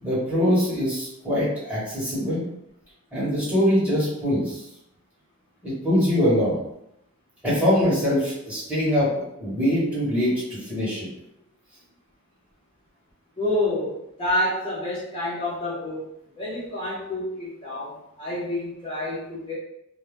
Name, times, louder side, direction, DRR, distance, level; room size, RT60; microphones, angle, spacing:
voice 1, 0.0-2.4 3.1-4.6 5.6-6.6 7.4-9.1 9.4-11.1, equal, 5° right, -9 dB, 1.4 m, -23 dB
voice 2, 13.4-16.0 16.4-19.5, left 1 dB, 25° left, -9 dB, 0.7 m, -28 dB
2.7 x 2.2 x 3.3 m, 0.81 s
head